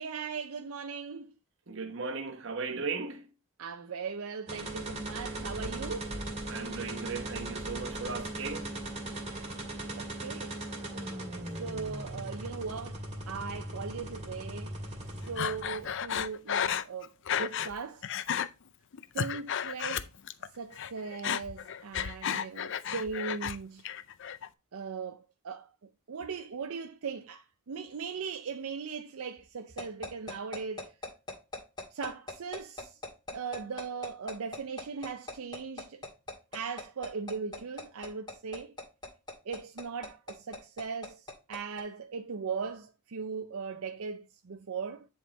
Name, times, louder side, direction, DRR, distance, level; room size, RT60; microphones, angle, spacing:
voice 1, 0.0-1.3 3.6-6.2 10.0-10.7 11.6-14.7 15.3-18.1 19.1-20.1 20.5-23.8 24.7-25.7 26.1-30.9 31.9-33.0 33.3-36.0 36.5-38.7 39.4-45.1, right 5 dB, 75° right, 0.5 m, -39 dB
voice 2, 1.7-3.3 6.5-8.7, right 4 dB, 60° right, 1.0 m, -37 dB
sound 1, 4.5-16.1, right 1 dB, 30° right, 1.9 m, -39 dB
Breathing, 15.4-17.7 18.0-18.5 18.9-20.5 20.7-23.6 23.8-24.5, left 8 dB, 55° left, 0.4 m, -33 dB
sound 2, 29.8-41.8, left 3 dB, 20° left, 2.0 m, -38 dB
10.0 x 3.6 x 4.1 m
head